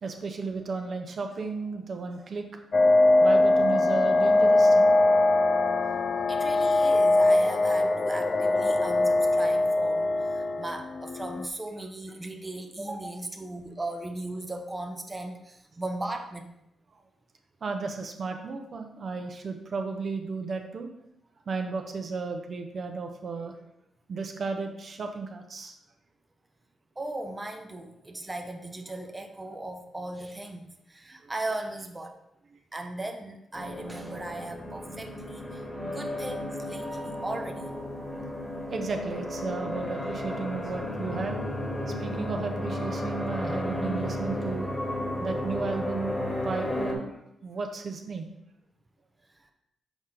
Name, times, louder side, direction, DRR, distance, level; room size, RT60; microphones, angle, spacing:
voice 1, 0.0-2.5 3.2-4.9 17.6-20.9 21.5-23.5 24.1-25.7 31.2-31.3 38.7-41.4 42.0-44.7 45.2-48.3, right 4 dB, 55° right, 4 dB, 0.7 m, -34 dB
sound 1, 2.7-11.5, left 2 dB, 45° left, 0.4 m, -22 dB
voice 2, 6.3-16.5 27.0-32.2 32.7-37.7 49.4-49.5, right 2 dB, 20° right, 5 dB, 0.7 m, -37 dB
sound 2, 33.5-46.9, left 1 dB, 20° left, 1.5 m, -33 dB
6.0 x 4.2 x 3.8 m, 0.82 s
supercardioid pair, 60°, 0 cm